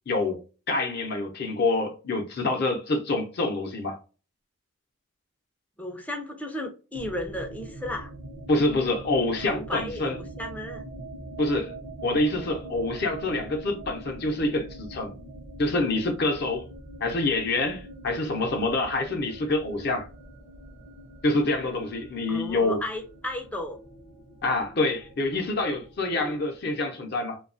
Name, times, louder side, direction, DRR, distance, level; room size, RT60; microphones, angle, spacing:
voice 1, 0.1-0.4 0.7-4.0 8.5-10.2 11.4-11.7 12.0-15.1 15.6-16.7 17.0-20.1 21.2-22.8 24.4-27.4, left 2 dB, 50° left, 0.6 m, -26 dB
voice 2, 5.8-8.1 9.4-10.8 22.3-23.8 26.1-26.4, left 1 dB, 5° left, 0.4 m, -34 dB
sound 1, 6.9-26.8, right 1 dB, 55° right, 0.6 m, -43 dB
2.7 x 2.2 x 2.5 m
head